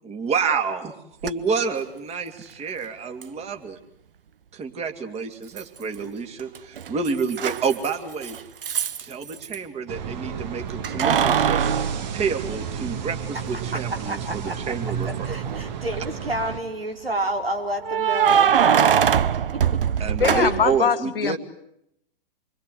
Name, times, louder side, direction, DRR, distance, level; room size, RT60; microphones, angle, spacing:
voice 1, 0.0-0.9 1.2-3.8 4.5-8.4 9.0-11.6 12.1-15.4 20.0-21.4, right 5 dB, 20° right, 2.8 m, -28 dB
Keys jangling, 1.2-1.3 3.2-3.3 5.6-6.1 6.4-9.6 10.8-13.0 13.5-13.6 15.3-15.9 17.8-20.8, right 8 dB, 65° right, 1.0 m, -22 dB
sound 1, 9.9-16.6, right 7 dB, 50° right, 2.3 m, -32 dB
voice 2, 14.1-18.9 19.4-19.8, right 1 dB, 85° right, 4.7 m, -30 dB
voice 3, 20.2-21.4, left 7 dB, 70° left, 1.5 m, -22 dB
27.0 x 24.0 x 8.0 m
figure-of-eight pair, 110°, 29 cm